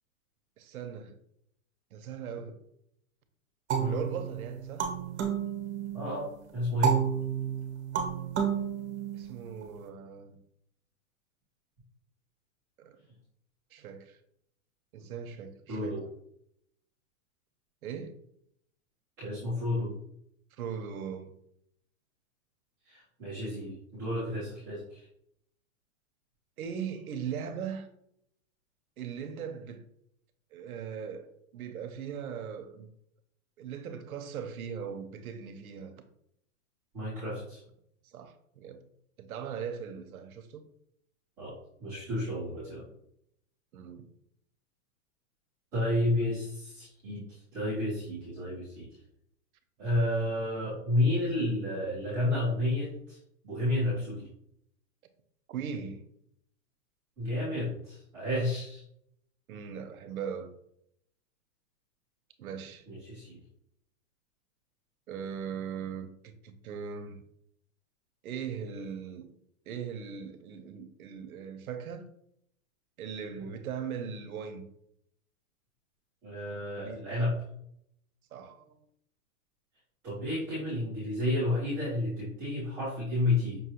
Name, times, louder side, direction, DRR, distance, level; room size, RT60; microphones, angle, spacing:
voice 1, 0.6-1.2 1.9-2.6 3.8-4.9 9.1-10.4 12.8-13.0 13.7-14.2 14.9-16.1 17.8-18.2 20.6-21.3 26.6-27.9 29.0-29.8 30.5-32.9 33.6-36.0 38.0-38.8 39.2-40.6 43.7-44.1 55.5-56.1 59.5-60.5 62.4-62.9 65.1-67.2 68.2-69.3 69.7-72.1 73.0-74.6 76.8-77.1 78.3-78.8, right 7 dB, 80° right, 0.7 m, -39 dB
sound 1, 3.7-6.2 6.8-9.6, right 8 dB, 50° right, 0.9 m, -31 dB
voice 2, 5.9-6.9 15.7-16.0 19.2-19.9 22.8-25.0 36.9-37.6 41.4-41.5 41.8-42.8 45.7-48.9 49.8-53.2 53.4-54.3 57.2-58.8 62.9-63.4 73.4-73.5 76.2-77.4 80.0-83.6, left 1 dB, 5° right, 0.6 m, -31 dB
5.6 x 2.3 x 2.8 m
supercardioid pair, 180°, 43 cm